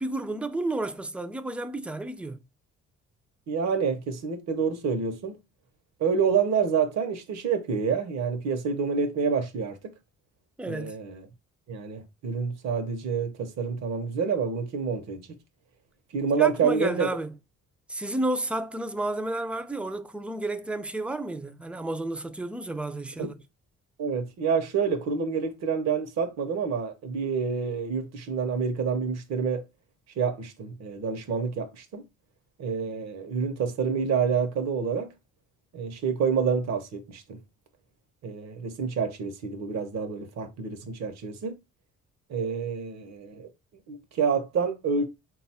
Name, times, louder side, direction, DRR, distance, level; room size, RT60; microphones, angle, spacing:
voice 1, 0.0-2.4 10.6-10.9 16.4-17.3 17.9-23.3, right 2 dB, 5° right, 0.4 m, -31 dB
voice 2, 3.5-5.4 6.0-9.8 10.7-11.3 11.7-15.3 16.1-17.1 23.2-23.3 24.0-29.6 30.2-32.0 32.6-35.1 35.7-37.4 38.2-41.5 42.3-43.5 43.9-45.1, right 6 dB, 60° right, 0.8 m, -28 dB
3.9 x 2.3 x 4.1 m
cardioid pair, 90°, 30 cm